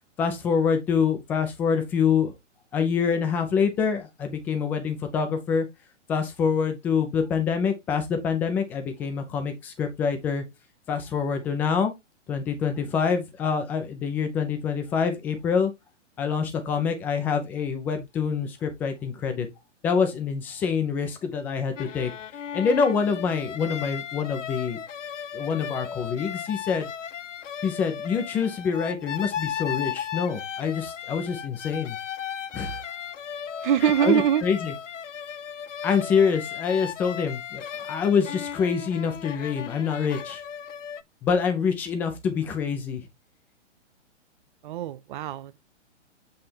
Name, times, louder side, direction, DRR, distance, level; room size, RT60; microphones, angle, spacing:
voice 1, 0.2-2.3 2.7-5.7 6.1-10.4 10.9-11.9 12.3-15.7 16.2-19.5 19.8-22.1 22.5-24.8 25.3-26.9 27.6-32.0 32.5-32.8 34.0-34.7 35.8-40.4 41.2-43.0, left 6 dB, 5° left, 0.3 m, -26 dB
sound 1, 21.8-41.0, left 8 dB, 85° left, 0.6 m, -36 dB
voice 2, 33.6-34.5 44.6-45.6, right 10 dB, 45° right, 0.5 m, -23 dB
7.8 x 3.3 x 4.3 m
hypercardioid pair, 125°, 36 cm